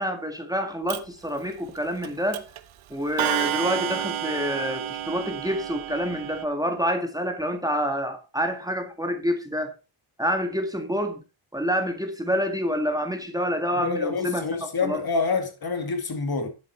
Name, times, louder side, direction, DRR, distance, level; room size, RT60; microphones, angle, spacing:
voice 1, 0.0-2.5 2.9-9.7 10.2-11.2 11.5-15.0, equal, 5° right, 1.8 m, -27 dB
Clock, 0.9-1.0 2.0-2.1 2.3-2.6 3.2-6.4, right 11 dB, 75° right, 1.0 m, -30 dB
voice 2, 13.8-16.5, left 4 dB, 50° left, 2.5 m, -27 dB
10.5 x 7.6 x 4.5 m
cardioid pair, 105°, 49 cm